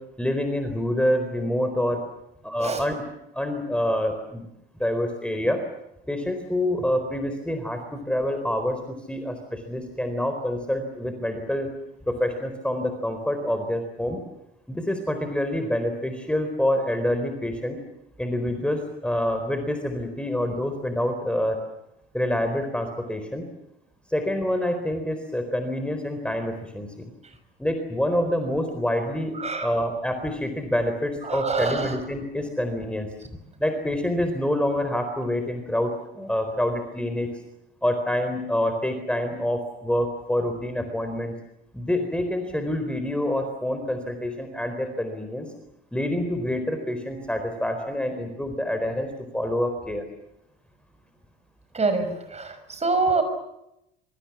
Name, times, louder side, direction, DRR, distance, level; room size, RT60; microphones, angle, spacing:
voice 1, 0.2-2.0 2.4-2.9 3.3-4.5 4.8-5.6 6.1-11.7 12.1-14.2 14.7-17.8 18.2-21.6 22.1-23.5 24.1-27.1 27.6-29.3 29.6-33.1 33.6-37.3 37.8-41.3 41.7-45.5 45.9-49.1 49.3-50.0, left 1 dB, 5° left, 6 dB, 4.2 m, -27 dB
voice 2, 29.3-29.7 31.2-32.0 51.7-53.2, right 3 dB, 20° right, 9 dB, 6.0 m, -25 dB
26.5 x 24.5 x 7.3 m, 0.84 s
figure-of-eight pair, 65°, 30 cm